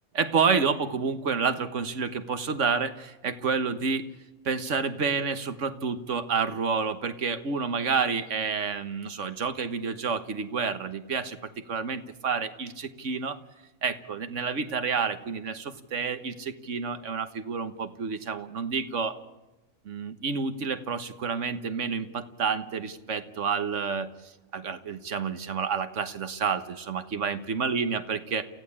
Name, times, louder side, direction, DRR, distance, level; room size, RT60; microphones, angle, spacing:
voice 1, 0.1-4.1 4.5-13.4 13.8-19.2 19.9-28.4, right 5 dB, 80° right, 10 dB, 1.6 m, -29 dB
29.0 x 15.5 x 8.7 m, 1.1 s
omnidirectional pair, 1.2 m